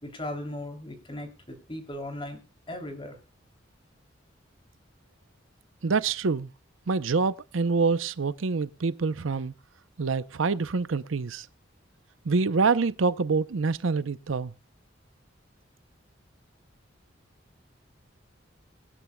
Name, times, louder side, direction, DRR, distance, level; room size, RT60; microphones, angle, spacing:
voice 1, 0.0-2.4 2.7-3.2, left 1 dB, 25° left, 3.0 m, -37 dB
voice 2, 5.8-6.5 6.9-9.5 10.0-11.5 12.2-14.5, right 4 dB, 90° right, 0.6 m, -26 dB
25.0 x 10.0 x 2.3 m
head